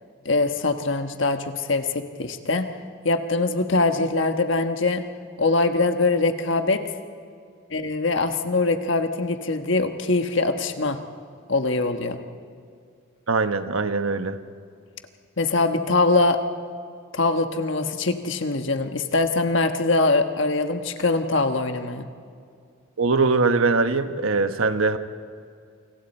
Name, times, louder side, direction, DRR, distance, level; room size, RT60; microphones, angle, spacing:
voice 1, 0.2-2.7 3.0-5.0 5.4-6.8 7.7-11.0 11.5-12.2 15.4-16.4 17.1-22.1, left 3 dB, 65° left, 6 dB, 1.3 m, -23 dB
voice 2, 13.3-14.4 23.0-25.0, right 3 dB, 85° right, 9 dB, 1.1 m, -22 dB
28.5 x 26.5 x 4.4 m, 2.3 s
head